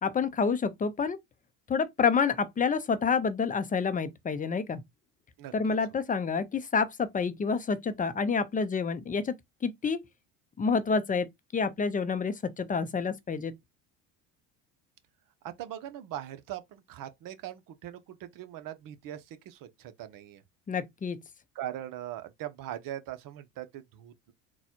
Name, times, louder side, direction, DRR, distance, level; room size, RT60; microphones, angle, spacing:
voice 1, 0.0-1.2 1.7-4.8 5.5-9.3 9.6-10.0 10.6-11.3 11.5-13.6 20.7-21.2, left 5 dB, 20° left, 0.6 m, -28 dB
voice 2, 15.4-20.4 21.5-24.3, right 12 dB, 55° right, 0.9 m, -41 dB
4.0 x 2.3 x 4.4 m
supercardioid pair, 95°, 40 cm